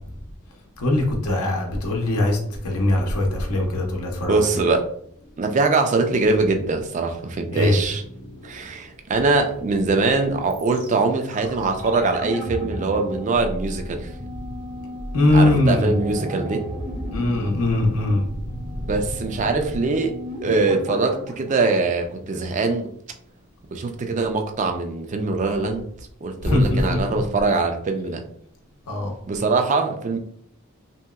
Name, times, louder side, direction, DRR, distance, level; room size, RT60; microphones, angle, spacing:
voice 1, 0.8-2.4 2.6-4.5 7.5-7.8 8.2-8.3 15.1-15.9 17.1-18.2 26.4-27.0 28.9-29.1, left 1 dB, 85° left, 0 dB, 0.7 m, -21 dB
voice 2, 4.3-4.9 5.4-8.0 8.4-14.1 15.3-16.7 18.8-20.2 20.4-22.9 23.7-25.9 26.2-28.2 29.3-30.2, right 3 dB, 35° right, 6 dB, 0.3 m, -22 dB
sound 1, 10.5-22.5 22.7-22.8, equal, 70° right, 1.0 m, -33 dB
2.8 x 2.8 x 2.3 m, 0.66 s
head